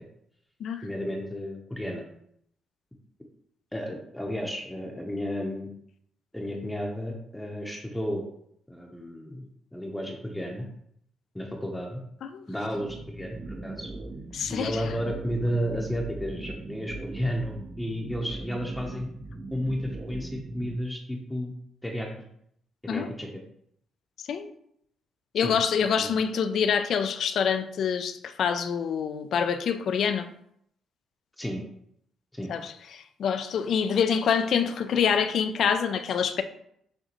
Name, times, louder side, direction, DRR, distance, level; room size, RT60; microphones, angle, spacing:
voice 1, 0.8-2.0 3.7-5.7 6.3-8.3 8.7-10.7 11.3-12.0 12.5-13.9 14.5-19.1 19.5-21.5 21.8-22.1 22.8-23.3 25.4-25.6 26.0-26.2 31.4-31.6 32.3-32.5, equal, 10° left, 0.7 m, -32 dB
sound 1, 12.7-20.8, right 2 dB, 35° right, 0.5 m, -40 dB
voice 2, 14.3-14.9 22.9-23.1 24.2-24.5 25.3-30.3 32.5-36.4, left 7 dB, 65° left, 0.4 m, -26 dB
6.4 x 2.5 x 3.0 m
cardioid pair, 90°, 0 cm